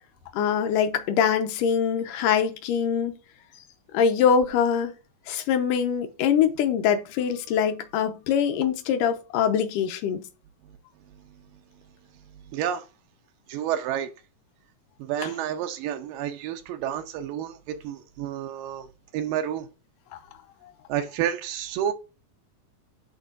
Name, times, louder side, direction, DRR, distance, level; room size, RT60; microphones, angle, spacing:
voice 1, 0.3-3.1 3.9-4.9 5.3-10.2 15.2-15.3, left 7 dB, 75° left, 2.4 m, -23 dB
voice 2, 12.5-12.9 13.5-14.1 15.0-18.9 19.1-19.7 20.9-21.9, right 10 dB, 85° right, 2.4 m, -30 dB
11.0 x 3.7 x 2.5 m
omnidirectional pair, 3.9 m